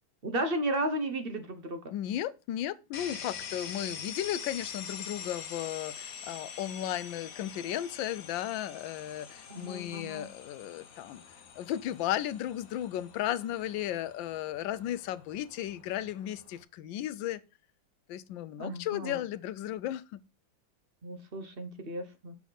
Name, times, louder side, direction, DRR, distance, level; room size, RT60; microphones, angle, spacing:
voice 1, 0.2-1.8 9.5-10.3 18.6-19.2 21.0-22.3, right 1 dB, 40° right, 0.9 m, -34 dB
voice 2, 1.9-11.2 11.5-17.4 18.1-20.2, left 12 dB, 80° left, 1.3 m, -35 dB
sound 1, 2.9-16.6, left 7 dB, 55° left, 1.2 m, -45 dB
7.1 x 6.0 x 4.0 m
omnidirectional pair, 2.1 m